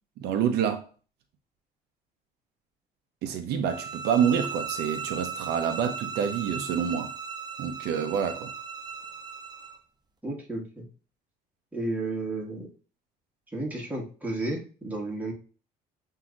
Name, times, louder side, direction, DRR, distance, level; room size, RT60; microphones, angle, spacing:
voice 1, 0.2-0.9 3.2-7.1 7.6-8.5, right 8 dB, 80° right, 0.7 m, -27 dB
sound 1, 3.7-9.8, right 6 dB, 25° right, 0.6 m, -37 dB
voice 2, 10.2-10.8 11.7-12.7 13.5-15.3, right 2 dB, 10° right, 1.6 m, -32 dB
7.1 x 2.8 x 2.4 m
cardioid pair, 110°, 17 cm